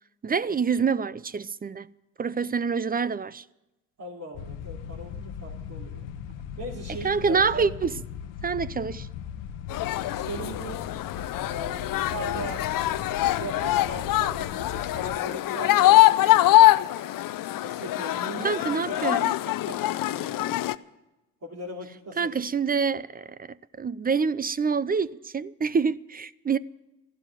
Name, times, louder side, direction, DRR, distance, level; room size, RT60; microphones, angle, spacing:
voice 1, 0.2-1.9 2.2-3.4 7.0-7.9 8.4-9.1 18.4-19.3 22.2-23.5 23.8-26.6, right 5 dB, 20° right, 0.5 m, -26 dB
voice 2, 4.0-6.1 6.6-7.7 10.1-10.9 11.4-12.6 13.3-16.8 17.6-20.6 21.4-22.4, right 1 dB, 40° right, 3.4 m, -39 dB
sound 1, 4.3-15.2, left 8 dB, 70° left, 1.0 m, -38 dB
sound 2, 9.7-20.8, left 15 dB, 50° left, 0.6 m, -23 dB
13.5 x 12.0 x 8.9 m
hypercardioid pair, 60°, 45 cm